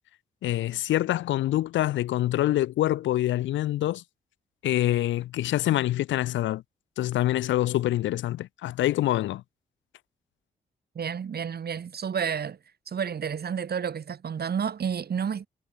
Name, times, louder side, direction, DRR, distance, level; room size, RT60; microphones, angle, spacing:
voice 1, 0.4-4.0 4.6-6.6 7.0-9.4, left 14 dB, 80° left, 0.7 m, -25 dB
voice 2, 10.9-12.6 12.9-15.5, right 7 dB, 55° right, 1.7 m, -30 dB
supercardioid pair, 45°, 19 cm